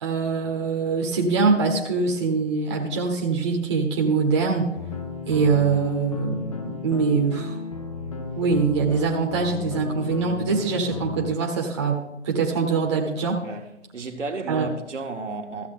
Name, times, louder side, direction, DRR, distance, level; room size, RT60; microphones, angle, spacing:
voice 1, 0.0-4.7 5.3-7.6 8.4-13.4 14.5-14.7, right 4 dB, 25° right, 1.1 m, -23 dB
sound 1, 4.8-11.4, left 4 dB, 30° left, 0.7 m, -33 dB
voice 2, 13.4-15.7, right 3 dB, 75° right, 1.6 m, -33 dB
13.5 x 7.3 x 3.9 m
figure-of-eight pair, 155°, 37 cm